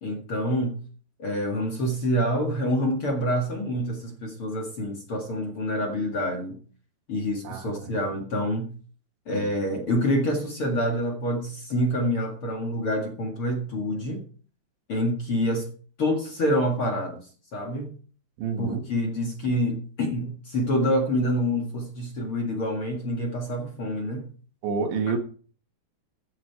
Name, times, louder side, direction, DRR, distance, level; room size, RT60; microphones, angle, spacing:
voice 1, 0.0-0.8 1.2-6.6 7.1-8.7 9.3-14.2 14.9-15.7 16.0-17.9 18.6-24.3, equal, 45° left, 1.9 m, -27 dB
voice 2, 7.4-7.9 9.3-9.5 18.4-18.8 24.6-25.2, right 5 dB, 85° right, 4.1 m, -29 dB
14.5 x 8.6 x 4.8 m
omnidirectional pair, 5.1 m